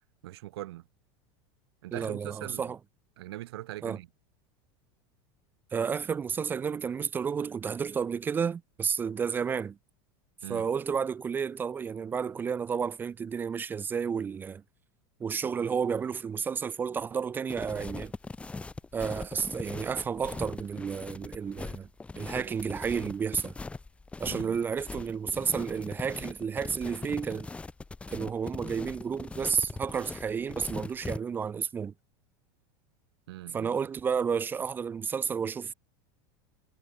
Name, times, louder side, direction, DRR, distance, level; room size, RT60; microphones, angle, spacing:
voice 1, 0.2-0.9 1.8-2.7 3.2-4.1 10.4-10.7 24.3-24.6 33.3-33.7, right 16 dB, 85° right, 2.0 m, -41 dB
voice 2, 1.9-2.8 3.8-4.0 5.7-9.8 10.5-14.6 15.2-18.1 18.9-21.9 22.2-23.5 24.2-27.5 28.1-31.9 33.5-35.7, right 6 dB, 15° right, 0.4 m, -31 dB
sound 1, 17.5-31.2, left 3 dB, 10° left, 4.3 m, -40 dB
supercardioid pair, 155°, 13 cm